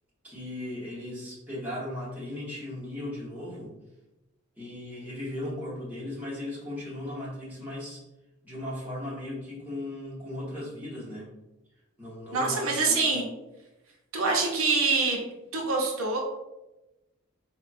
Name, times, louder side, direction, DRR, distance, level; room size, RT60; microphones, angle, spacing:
voice 1, 0.2-3.7 4.6-8.0 8.4-11.3 12.0-13.1, left 1 dB, 10° right, -9 dB, 1.0 m, -37 dB
voice 2, 12.3-13.2 14.1-15.2 15.5-16.2, right 3 dB, 85° right, 0 dB, 0.6 m, -25 dB
3.6 x 2.2 x 2.5 m, 0.99 s
head